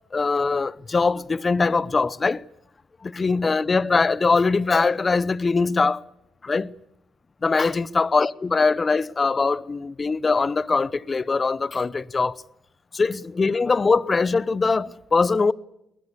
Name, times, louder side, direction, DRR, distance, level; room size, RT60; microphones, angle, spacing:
voice 1, 0.1-2.4 3.1-6.0 6.5-6.7 7.4-12.3 13.0-15.5, left 4 dB, 30° left, 0.8 m, -22 dB
21.0 x 20.5 x 8.4 m
cardioid pair, 90°, 0 cm